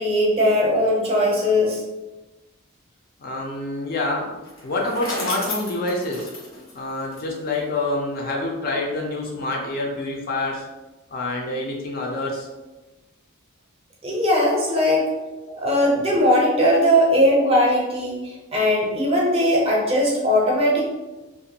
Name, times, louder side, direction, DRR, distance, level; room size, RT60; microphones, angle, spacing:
voice 1, 0.0-1.8 14.0-15.1 15.6-20.9, equal, 30° right, -3 dB, 0.6 m, -19 dB
voice 2, 3.2-4.3 4.6-6.3 6.7-10.6 11.1-12.5 14.9-15.0 15.4-15.5, left 2 dB, 45° left, -1 dB, 0.4 m, -27 dB
Bicycle, 4.4-7.6, left 2 dB, 90° left, 0.8 m, -33 dB
2.5 x 2.2 x 2.7 m, 1.1 s
head